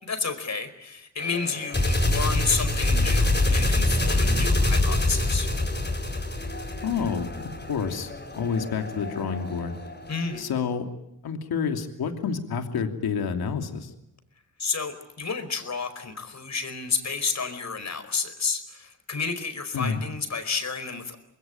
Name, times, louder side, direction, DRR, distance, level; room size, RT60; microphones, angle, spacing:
voice 1, 0.0-5.5 10.1-10.4 14.6-21.2, left 4 dB, 45° left, 9 dB, 4.9 m, -31 dB
sound 1, 1.2-10.4, left 2 dB, 25° left, 6.9 m, -25 dB
voice 2, 6.8-9.8 10.4-10.9 11.2-13.9 19.7-20.0, left 6 dB, 75° left, 5 dB, 3.0 m, -29 dB
26.5 x 21.0 x 9.2 m, 0.83 s
cardioid pair, 65°, 37 cm